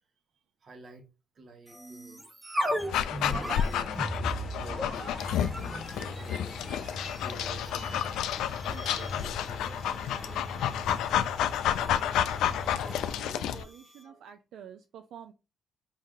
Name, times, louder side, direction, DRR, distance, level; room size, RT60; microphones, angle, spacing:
voice 1, 0.6-1.1 1.3-2.2 3.2-4.1 4.6-6.9 7.2-8.2 8.7-11.1 12.0-12.2, right 3 dB, 50° right, 1.1 m, -50 dB
sound 1, 1.7-14.1, equal, 15° right, 1.3 m, -39 dB
sound 2, 2.8-13.2, left 1 dB, 15° left, 1.1 m, -42 dB
Dog, 2.9-13.6, left 10 dB, 85° left, 0.3 m, -30 dB
voice 2, 13.1-15.3, right 8 dB, 75° right, 0.4 m, -48 dB
4.9 x 2.7 x 3.7 m
cardioid pair, 90°, 0 cm